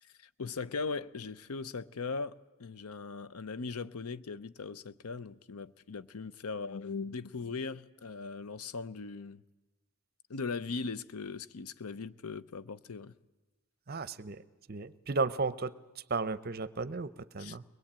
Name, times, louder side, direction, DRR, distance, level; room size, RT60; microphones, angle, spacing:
voice 1, 0.0-9.4 10.3-13.2 17.4-17.6, left 4 dB, 90° left, 0.7 m, -39 dB
voice 2, 13.9-14.4 14.7-17.6, right 4 dB, 45° right, 0.7 m, -34 dB
23.0 x 21.0 x 8.8 m
head